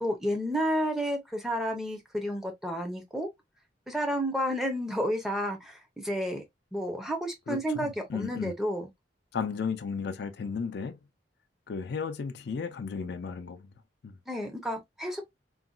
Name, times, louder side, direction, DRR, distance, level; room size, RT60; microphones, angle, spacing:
voice 1, 0.0-3.3 3.9-6.4 6.7-8.9 14.3-15.2, equal, ahead, 0.7 m, -31 dB
voice 2, 7.5-8.5 9.3-11.0 11.7-13.7 14.0-14.2, left 5 dB, 65° left, 0.4 m, -34 dB
3.8 x 2.3 x 2.2 m
head